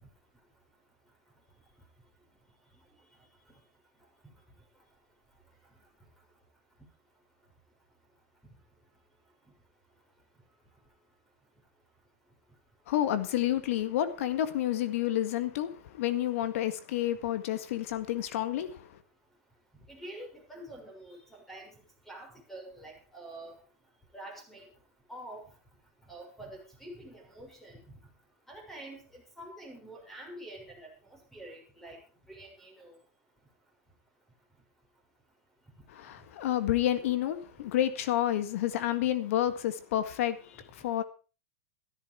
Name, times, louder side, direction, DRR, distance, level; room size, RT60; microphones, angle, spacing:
voice 1, 12.9-19.0 35.9-41.0, left 12 dB, 65° left, 1.8 m, -30 dB
voice 2, 19.9-21.7 22.1-23.5 24.1-24.7 25.1-25.4 26.1-28.0 28.5-30.9 31.3-32.0 32.3-33.0, right 1 dB, 5° left, 6.4 m, -46 dB
14.5 x 13.0 x 4.8 m
supercardioid pair, 145°, 8 cm